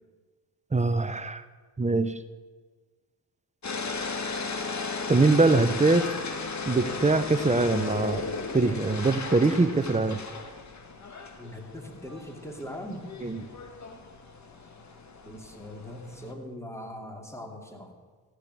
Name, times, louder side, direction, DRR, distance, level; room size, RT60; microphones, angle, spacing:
voice 1, 0.7-1.4 1.8-2.1 5.1-6.1 6.7-8.2 8.5-10.2 13.2-13.4, right 3 dB, 15° right, 12 dB, 1.1 m, -23 dB
sound 1, 3.6-16.3, left 4 dB, 45° left, 1.9 m, -36 dB
voice 2, 11.4-13.1 15.2-17.9, equal, 5° left, 2 dB, 3.0 m, -40 dB
15.0 x 6.6 x 9.4 m, 1.4 s
supercardioid pair, 55°, 41 cm